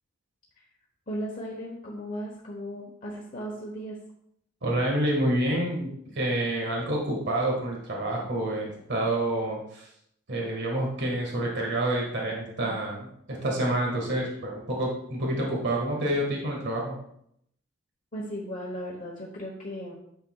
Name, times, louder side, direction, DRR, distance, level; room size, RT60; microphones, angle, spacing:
voice 1, 1.1-4.0 18.1-20.0, equal, 40° left, -2 dB, 1.0 m, -36 dB
voice 2, 4.6-9.8 10.3-16.9, right 1 dB, 60° right, -1 dB, 1.7 m, -28 dB
9.1 x 6.6 x 2.3 m, 0.73 s
head